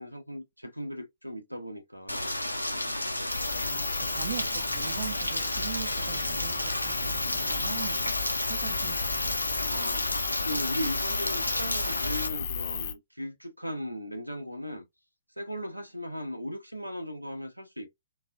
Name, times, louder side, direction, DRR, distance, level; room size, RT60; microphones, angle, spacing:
voice 1, 0.0-2.3 9.6-10.0 10.4-14.8 15.4-17.9, equal, 90° right, 0.6 m, -37 dB
Rain, 2.1-12.3, left 1 dB, 90° left, 0.5 m, -31 dB
sound 1, 3.3-12.9, left 7 dB, 40° left, 0.5 m, -35 dB
voice 2, 3.6-8.1 8.5-9.4, right 9 dB, 45° right, 0.5 m, -41 dB
3.0 x 2.0 x 2.2 m
figure-of-eight pair, 125°, 0 cm